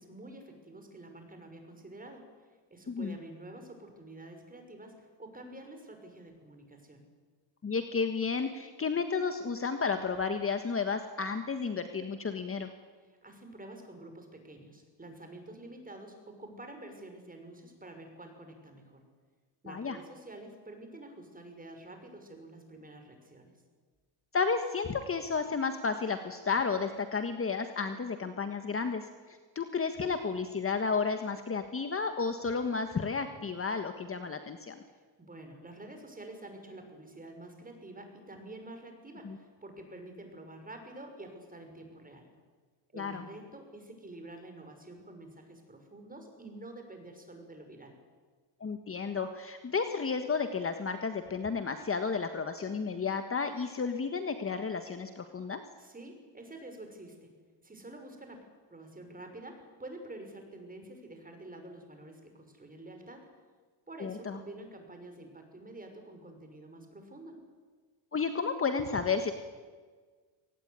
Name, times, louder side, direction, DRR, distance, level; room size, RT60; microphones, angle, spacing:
voice 1, 0.0-7.1 13.0-19.1 19.6-23.6 34.9-42.3 42.9-48.0 55.8-57.3 57.6-58.4 58.7-63.3 63.9-67.4, right 1 dB, 15° right, 5 dB, 6.1 m, -48 dB
voice 2, 7.6-12.7 19.7-20.0 24.3-34.8 39.2-39.4 42.9-43.3 48.6-55.6 64.0-64.4 68.1-69.3, left 5 dB, 25° left, 7 dB, 1.6 m, -32 dB
22.5 x 18.5 x 9.8 m, 1.5 s
cardioid pair, 100°, 49 cm